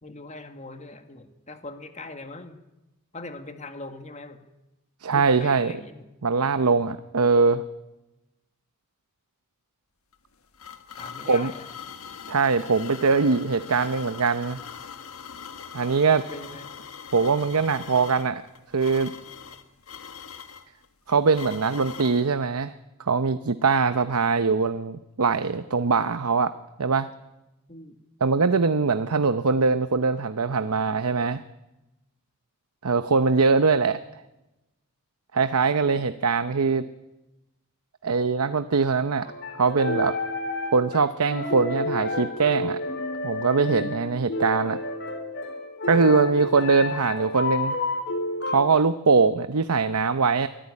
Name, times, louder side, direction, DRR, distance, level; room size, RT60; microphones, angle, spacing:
voice 1, 0.0-2.6 3.1-4.4 5.1-6.1 10.9-11.7 16.1-16.7 27.7-28.0 35.8-36.2 45.9-46.5, left 2 dB, 30° left, 7 dB, 1.8 m, -41 dB
voice 2, 5.0-5.7 6.2-7.6 11.3-11.5 12.3-14.6 15.7-16.2 17.1-18.4 18.7-19.1 21.1-22.7 23.0-26.5 26.8-27.1 28.2-31.4 32.8-34.0 35.3-36.9 38.0-39.3 39.6-40.1 40.7-42.8 43.2-44.8 45.9-47.8 48.4-50.5, right 4 dB, 85° right, 11 dB, 0.8 m, -22 dB
sound 1, 10.1-22.3, left 7 dB, 70° left, 1.5 m, -42 dB
sound 2, 39.2-48.7, left 2 dB, 50° left, 2.7 m, -30 dB
23.0 x 14.0 x 9.6 m, 1.0 s
head